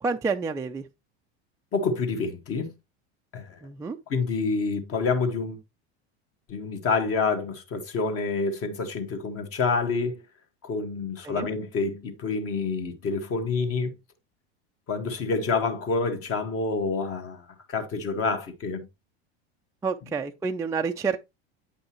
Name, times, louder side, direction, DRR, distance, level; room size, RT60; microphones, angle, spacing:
voice 1, 0.0-0.8 3.6-4.0 11.2-11.5 19.8-21.2, right 5 dB, 10° right, 0.4 m, -28 dB
voice 2, 1.7-2.7 3.3-3.6 4.1-5.6 6.5-10.2 10.6-14.0 14.9-18.9, left 4 dB, 45° left, 1.6 m, -28 dB
8.5 x 5.4 x 2.9 m
hypercardioid pair, 95°, 33 cm